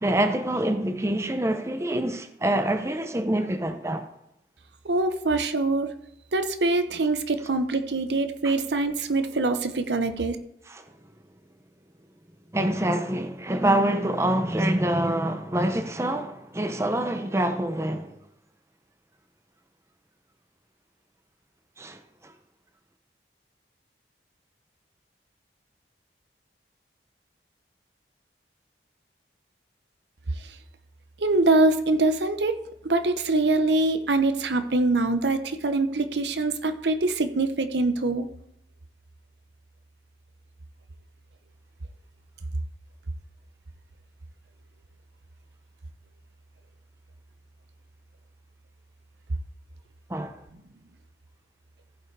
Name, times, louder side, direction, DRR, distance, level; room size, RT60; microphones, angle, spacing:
voice 1, 0.0-4.1 8.4-8.5 10.7-10.9 12.5-18.2 21.8-22.3 50.1-50.4, right 1 dB, 15° right, 0.6 m, -26 dB
voice 2, 4.8-5.9 6.3-10.4 30.4-30.6 31.2-32.6 32.8-38.3, right 2 dB, 80° right, 0.8 m, -24 dB
14.5 x 5.4 x 4.7 m
head